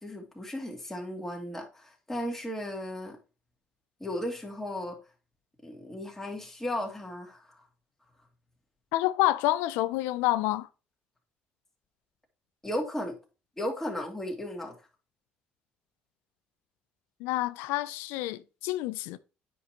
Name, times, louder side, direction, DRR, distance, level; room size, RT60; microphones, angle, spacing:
voice 1, 0.0-3.2 4.0-5.0 5.6-7.6 12.6-13.1 13.6-14.8, left 1 dB, 10° left, 2.4 m, -35 dB
voice 2, 8.9-10.7 17.2-19.2, left 16 dB, 90° left, 0.4 m, -28 dB
9.3 x 5.3 x 2.9 m
supercardioid pair, 85°, 4 cm